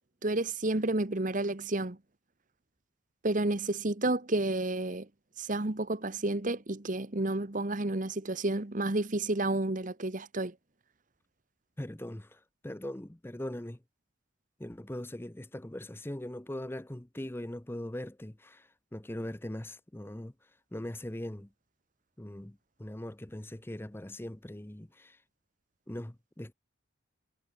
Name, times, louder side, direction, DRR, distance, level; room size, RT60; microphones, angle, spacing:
voice 1, 0.2-2.0 3.2-5.1 5.4-10.5, right 2 dB, 40° right, 1.2 m, -30 dB
voice 2, 11.8-13.8 14.6-21.5 22.2-25.2 25.9-26.5, left 1 dB, 10° left, 0.6 m, -41 dB
head